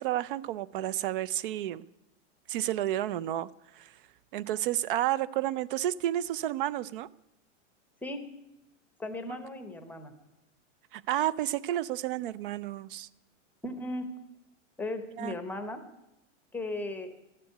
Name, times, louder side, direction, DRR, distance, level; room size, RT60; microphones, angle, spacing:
voice 1, 0.0-1.8 2.5-3.5 3.7-3.9 4.3-7.1 10.9-13.1 15.2-15.4, right 13 dB, 45° right, 0.4 m, -31 dB
voice 2, 9.0-10.1 13.6-14.1 14.8-15.8 16.5-17.1, left 2 dB, 5° left, 0.7 m, -36 dB
12.5 x 7.6 x 9.2 m
supercardioid pair, 150°, 38 cm